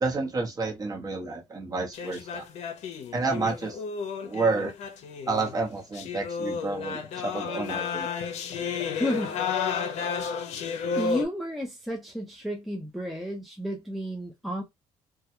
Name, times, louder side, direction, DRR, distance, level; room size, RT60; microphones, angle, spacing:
voice 1, 0.0-2.4 3.1-3.8 4.2-4.7 5.3-8.1, right 3 dB, 30° right, 0.9 m, -30 dB
sound 1, 1.9-11.3, left 6 dB, 65° left, 0.6 m, -32 dB
voice 2, 8.9-9.7 10.2-10.3 10.9-14.6, equal, ahead, 0.4 m, -32 dB
2.3 x 2.1 x 2.8 m
cardioid pair, 105°, 12 cm